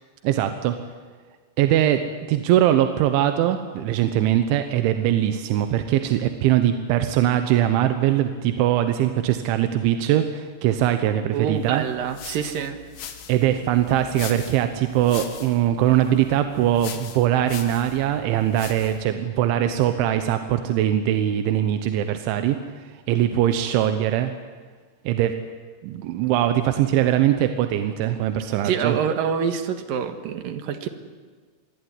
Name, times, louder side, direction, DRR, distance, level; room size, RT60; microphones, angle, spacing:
voice 1, 0.2-0.8 1.6-2.0 2.3-11.8 13.3-24.3 25.1-25.3 25.8-28.9, right 11 dB, 85° right, 8 dB, 3.5 m, -21 dB
voice 2, 11.3-12.8 19.1-19.2 28.6-30.9, right 7 dB, 60° right, 8 dB, 2.8 m, -26 dB
sound 1, 11.7-19.1, left 8 dB, 55° left, 2.2 m, -41 dB
26.0 x 21.0 x 9.7 m, 1.5 s
omnidirectional pair, 5.3 m